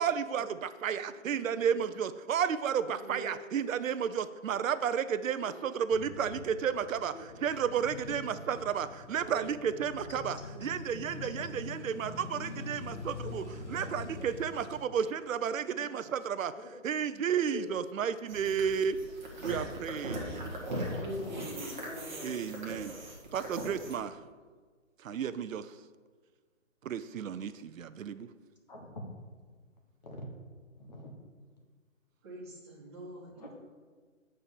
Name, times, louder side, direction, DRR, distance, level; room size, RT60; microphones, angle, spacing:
voice 1, 0.0-16.5 16.8-19.0 19.4-20.2 22.2-23.0 23.3-24.2 25.0-25.8 26.8-28.3, right 8 dB, 80° right, 12 dB, 0.5 m, -32 dB
voice 2, 1.0-1.8 3.0-3.3 4.5-4.6 5.4-5.5 6.2-7.3 8.1-8.2 9.2-9.4 10.1-10.3 11.4-11.5 12.0-12.2 13.2-13.3 13.7-14.3 15.6-15.9 16.5-16.7 17.2-17.7 18.7-18.8 19.5-19.8 20.2-20.5 20.9-22.8 23.8-23.9 28.7-29.0 30.0-30.3 30.7-31.1 33.4-33.5, left 1 dB, 35° left, 0 dB, 1.2 m, -45 dB
Male speech man speaking / Motorcycle / Idling, 5.9-14.8, left 3 dB, 60° left, 1.2 m, -44 dB
sound 1, 18.3-24.0, right 1 dB, 35° right, 1.4 m, -40 dB
voice 3, 32.2-33.6, right 1 dB, 20° right, -7 dB, 1.7 m, -47 dB
7.5 x 4.3 x 6.8 m, 1.5 s
hypercardioid pair, 165°, 39 cm